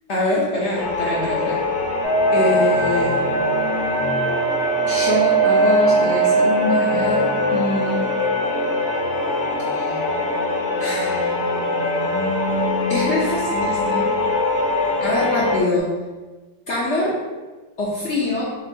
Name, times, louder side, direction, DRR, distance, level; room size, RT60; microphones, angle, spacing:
voice 1, 0.1-1.6 2.3-3.2 4.9-8.0 9.7-9.9 10.8-11.3 12.9-14.1 15.0-15.9 16.7-17.2 17.8-18.6, left 1 dB, 70° left, -5 dB, 0.6 m, -24 dB
sound 1, 0.8-15.6, left 3 dB, 85° left, 1.3 m, -24 dB
sound 2, 2.0-15.8, right 3 dB, 65° right, 0.6 m, -23 dB
6.1 x 2.2 x 2.6 m, 1.2 s
omnidirectional pair, 2.0 m